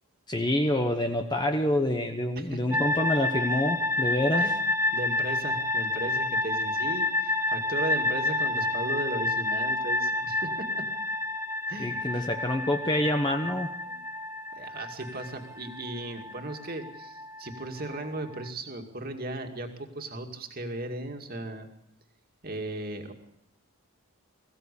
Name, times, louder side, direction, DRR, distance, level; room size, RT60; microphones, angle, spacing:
voice 1, 0.3-4.5 11.8-13.7, left 1 dB, 20° left, 4 dB, 1.1 m, -27 dB
voice 2, 2.4-2.8 4.4-4.5 4.9-10.9 11.7-12.3 13.9-14.0 14.5-21.7 22.4-23.1, right 2 dB, 40° right, 4 dB, 2.4 m, -36 dB
sound 1, 2.7-18.5, left 2 dB, 10° right, 2.1 m, -30 dB
22.0 x 16.0 x 8.5 m, 0.81 s
head